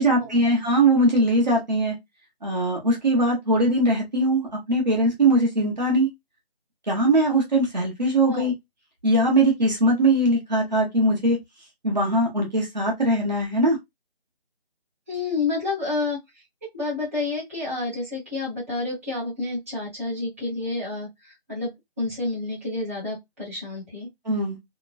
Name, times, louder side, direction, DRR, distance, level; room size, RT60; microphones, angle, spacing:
voice 1, 0.0-1.9 2.4-6.1 6.9-8.5 9.0-11.4 11.8-13.8 24.2-24.6, right 1 dB, 45° right, 1.1 m, -21 dB
voice 2, 15.1-16.2 16.7-21.7 22.0-24.1, left 3 dB, 15° right, 1.1 m, -29 dB
3.0 x 2.2 x 2.3 m
figure-of-eight pair, 170°, 32 cm